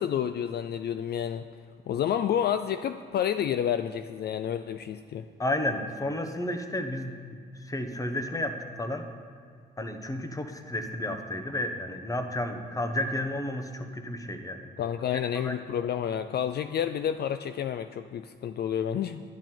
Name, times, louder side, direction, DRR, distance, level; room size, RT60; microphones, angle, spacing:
voice 1, 0.0-1.5 1.9-5.3 14.8-19.2, left 9 dB, 55° left, 10 dB, 0.4 m, -29 dB
voice 2, 5.4-9.1 9.8-14.7 15.1-15.6, left 1 dB, 15° left, 6 dB, 1.1 m, -32 dB
10.5 x 10.5 x 4.5 m, 2.1 s
cardioid pair, 90°, 20 cm